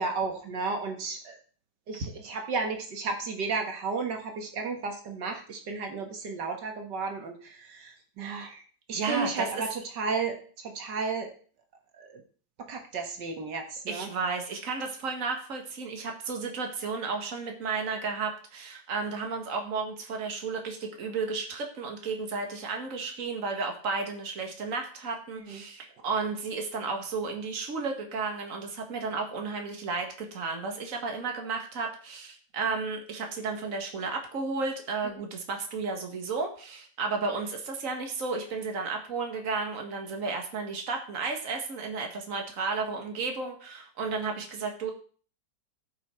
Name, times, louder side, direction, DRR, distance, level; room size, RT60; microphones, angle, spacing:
voice 1, 0.0-1.4 1.9-8.6 8.9-11.3 12.0-12.2 12.6-14.1 25.4-25.6, right 4 dB, 80° right, 4 dB, 2.1 m, -33 dB
voice 2, 8.9-9.7 13.9-44.9, right 4 dB, 50° right, 3 dB, 2.0 m, -33 dB
15.0 x 5.9 x 4.4 m, 0.43 s
omnidirectional pair, 1.8 m